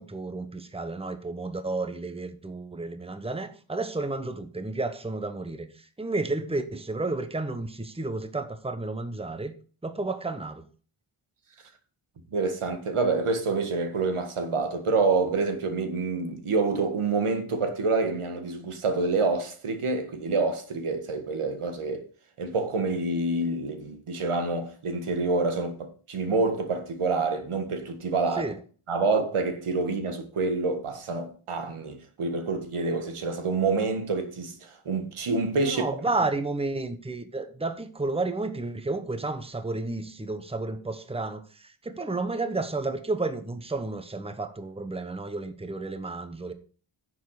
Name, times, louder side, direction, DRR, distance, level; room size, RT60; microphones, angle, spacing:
voice 1, 0.0-9.5 9.8-10.7 28.4-28.6 35.6-46.5, right 3 dB, 10° right, 1.0 m, -32 dB
voice 2, 12.3-22.1 22.4-28.5 28.9-35.8, right 3 dB, 90° right, 1.8 m, -27 dB
10.0 x 7.4 x 4.9 m
wide cardioid pair, 120°, 49 cm